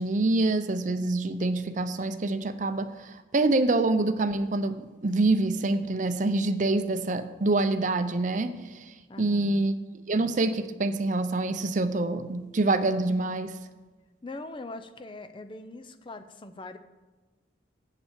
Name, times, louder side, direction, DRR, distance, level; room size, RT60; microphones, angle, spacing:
voice 1, 0.0-9.7 10.1-13.6, right 2 dB, 45° right, 10 dB, 0.6 m, -26 dB
voice 2, 9.1-9.7 14.2-16.8, left 2 dB, 30° left, 10 dB, 0.5 m, -42 dB
7.0 x 6.9 x 8.1 m, 1.2 s
head